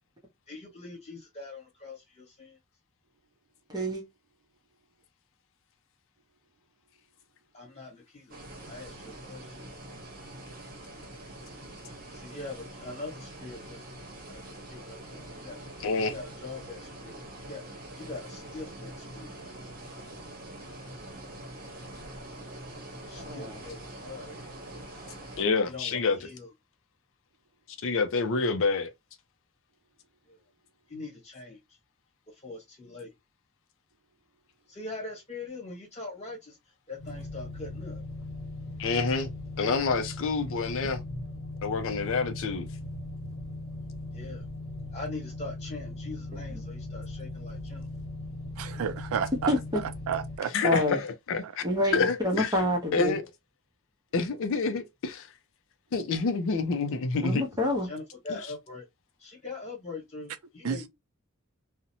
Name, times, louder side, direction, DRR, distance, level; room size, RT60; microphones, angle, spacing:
voice 1, 0.5-2.6 7.5-8.4 8.6-9.5 12.1-13.9 14.3-15.6 16.1-17.6 18.0-19.4 23.0-24.4 25.6-26.5 30.3-30.4 30.9-31.8 32.3-33.1 34.7-36.6 36.9-38.0 44.1-44.5 44.9-47.9 57.8-58.9 59.2-60.9, left 3 dB, 30° left, 1.3 m, -42 dB
voice 2, 3.7-4.0 23.2-23.5 49.5-49.6 50.6-51.0 51.6-53.2 57.2-57.9, left 1 dB, 20° right, 0.7 m, -27 dB
sound 1, 8.3-25.4, right 1 dB, 40° right, 0.9 m, -44 dB
voice 3, 15.8-16.1 25.4-26.3 27.8-28.9 38.8-39.3 39.6-41.0 41.6-42.7 50.5-51.6 51.9-52.5 52.9-53.2 54.1-55.3 55.9-57.4 58.3-58.4, left 4 dB, 60° left, 0.4 m, -28 dB
sound 2, 36.9-50.3, left 2 dB, 45° left, 1.0 m, -39 dB
voice 4, 48.6-49.5 50.1-50.8 60.6-60.9, right 7 dB, 70° right, 0.4 m, -31 dB
2.6 x 2.0 x 2.7 m
head